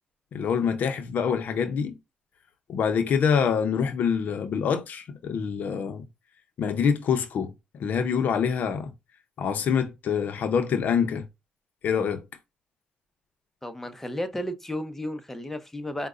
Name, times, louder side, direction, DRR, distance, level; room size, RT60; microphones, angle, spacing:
voice 1, 0.3-1.9 2.7-6.1 6.6-8.9 9.4-11.2 11.8-12.2, left 7 dB, 70° left, 0.6 m, -25 dB
voice 2, 13.6-16.1, left 1 dB, 10° left, 0.7 m, -33 dB
4.7 x 2.2 x 2.4 m
cardioid pair, 70°, 3 cm